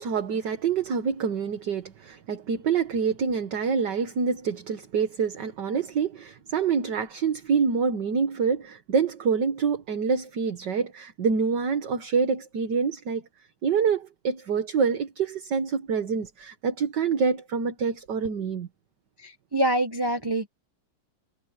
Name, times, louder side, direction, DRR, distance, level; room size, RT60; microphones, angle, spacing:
voice 1, 0.0-13.2 13.6-18.7, right 5 dB, 55° right, 2.0 m, -26 dB
voice 2, 19.2-20.5, right 1 dB, 20° right, 0.6 m, -26 dB
omnidirectional pair, 2.3 m